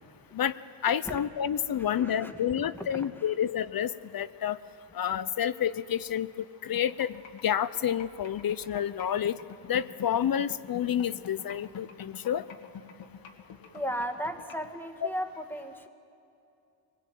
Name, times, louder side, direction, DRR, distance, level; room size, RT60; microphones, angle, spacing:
voice 1, 0.8-4.6 4.9-6.3 6.6-7.1 7.4-9.4 9.7-12.4 15.0-15.1, left 9 dB, 50° left, 15 dB, 0.6 m, -29 dB
voice 2, 1.8-2.4 2.7-3.3 13.7-15.9, equal, 5° left, 5 dB, 1.8 m, -36 dB
sound 1, 6.7-14.7, left 7 dB, 75° left, 2.0 m, -45 dB
24.5 x 19.5 x 9.1 m, 2.7 s
cardioid pair, 90°, 46 cm